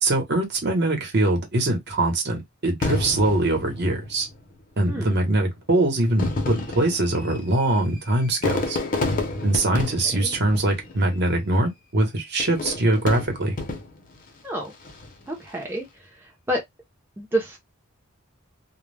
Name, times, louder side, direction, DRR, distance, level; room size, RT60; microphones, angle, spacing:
voice 1, 0.0-4.3 4.8-8.8 9.4-13.5, right 2 dB, 55° right, 1.0 m, -23 dB
Fireworks, 2.8-4.4 5.3-5.4 6.0-11.3 12.4-14.2 14.7-15.2, left 2 dB, 40° left, 0.7 m, -30 dB
voice 2, 4.9-5.2 10.2-10.3 14.4-14.7 15.3-15.9 16.5-16.6 17.2-17.6, right 1 dB, 10° right, 0.6 m, -28 dB
2.2 x 2.1 x 3.2 m
head